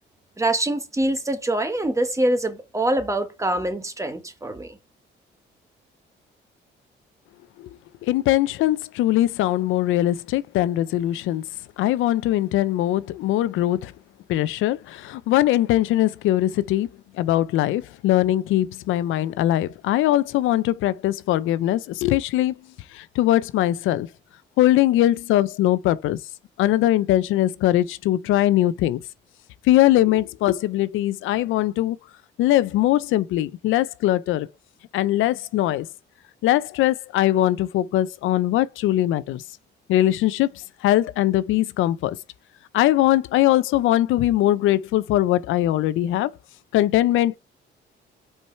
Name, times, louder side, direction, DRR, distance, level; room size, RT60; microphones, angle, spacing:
voice 1, 0.4-4.8, right 1 dB, 15° right, 1.2 m, -24 dB
voice 2, 8.0-11.4 11.8-13.9 14.3-16.9 17.1-22.5 22.9-24.1 24.6-26.2 26.6-29.0 29.6-32.0 32.4-34.5 34.9-35.9 36.4-39.4 39.9-42.2 42.7-46.3 46.7-47.3, left 14 dB, 85° left, 0.5 m, -21 dB
5.4 x 4.6 x 4.4 m
cardioid pair, 90°, 20 cm